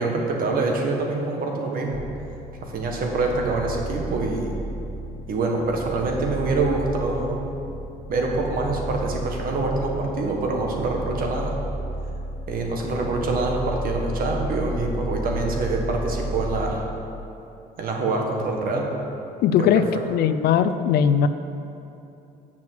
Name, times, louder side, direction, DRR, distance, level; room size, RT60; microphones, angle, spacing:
voice 1, 0.0-2.0 2.6-4.6 5.3-7.4 8.1-11.5 12.5-16.8 17.8-18.9 19.6-19.7, right 3 dB, 60° right, 1 dB, 1.6 m, -25 dB
sound 1, 1.9-16.7, right 1 dB, 5° left, 0.8 m, -33 dB
voice 2, 19.4-19.8 20.1-21.3, left 8 dB, 70° left, 11 dB, 0.5 m, -19 dB
7.5 x 6.0 x 7.7 m, 2.8 s
cardioid pair, 110°, 17 cm